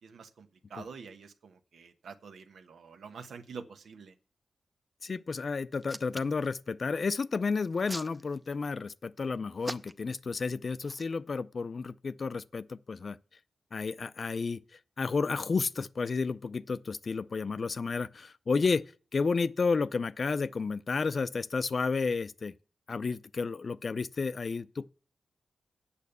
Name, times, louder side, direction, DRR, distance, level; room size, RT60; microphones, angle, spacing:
voice 1, 0.0-4.1, right 5 dB, 85° right, 1.0 m, -47 dB
voice 2, 5.0-13.2 13.7-14.6 15.0-18.8 19.1-22.5 22.9-24.9, left 4 dB, 50° left, 0.4 m, -31 dB
Hands, 5.7-6.5 7.5-8.7 9.6-10.2 10.8-11.0, right 1 dB, 5° right, 0.6 m, -41 dB
8.5 x 7.1 x 6.7 m
wide cardioid pair, 90°, 0 cm